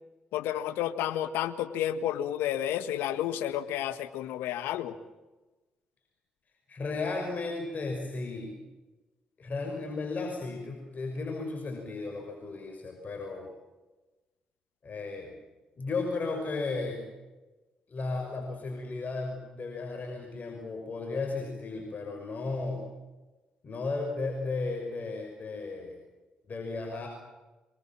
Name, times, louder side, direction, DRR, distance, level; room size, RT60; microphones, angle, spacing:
voice 1, 0.3-5.0, left 11 dB, 75° left, 12 dB, 1.5 m, -31 dB
voice 2, 6.7-8.6 9.4-13.5 14.8-15.3 15.8-17.0 17.9-22.8 23.6-26.0 26.4-27.1, left 3 dB, 45° left, 2 dB, 6.0 m, -34 dB
25.5 x 22.5 x 7.5 m, 1.1 s
hypercardioid pair, 45°, 4 cm